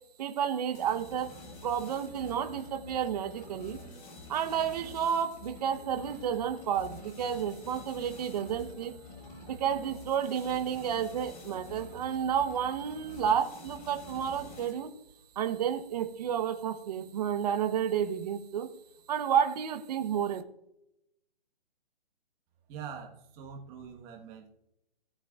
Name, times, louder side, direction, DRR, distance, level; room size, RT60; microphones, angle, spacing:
voice 1, 0.2-1.3 1.6-3.8 4.3-8.9 9.4-14.9 15.4-18.7 19.1-20.4, right 8 dB, 40° right, 7 dB, 1.0 m, -31 dB
sound 1, 0.7-15.0, left 3 dB, 20° left, 1.7 m, -48 dB
voice 2, 22.7-24.5, right 7 dB, 20° right, 1 dB, 1.3 m, -44 dB
18.0 x 7.9 x 2.4 m, 0.83 s
hypercardioid pair, 155°, 30 cm